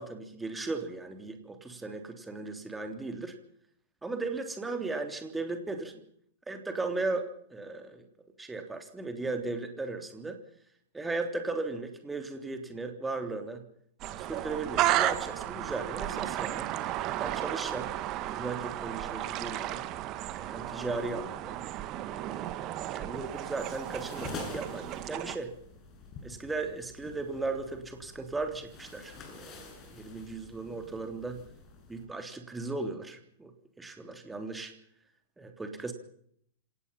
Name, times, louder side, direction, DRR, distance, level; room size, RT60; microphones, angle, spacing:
voice 1, 0.0-3.4 4.0-6.0 6.5-8.1 8.4-10.4 10.9-13.6 14.1-16.7 17.2-17.9 18.2-19.8 20.4-21.6 22.1-25.5 26.2-31.4 31.9-33.5 33.8-34.7 35.4-35.9, right 3 dB, 10° right, 6 dB, 3.4 m, -37 dB
sound 1, 14.0-25.4, right 14 dB, 40° right, 1.8 m, -33 dB
sound 2, 23.1-32.0, left 4 dB, 30° left, 7.8 m, -47 dB
26.5 x 18.5 x 5.7 m, 0.66 s
hypercardioid pair, 105°, 0 cm